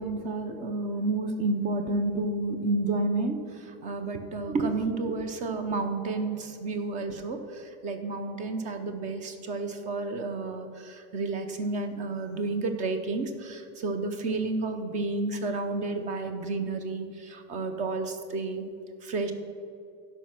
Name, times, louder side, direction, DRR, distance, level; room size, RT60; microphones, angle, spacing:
voice 1, 0.0-18.7 19.0-19.3, right 3 dB, 20° right, 7 dB, 0.7 m, -31 dB
12.5 x 5.5 x 5.9 m, 2.5 s
supercardioid pair, 170°, 33 cm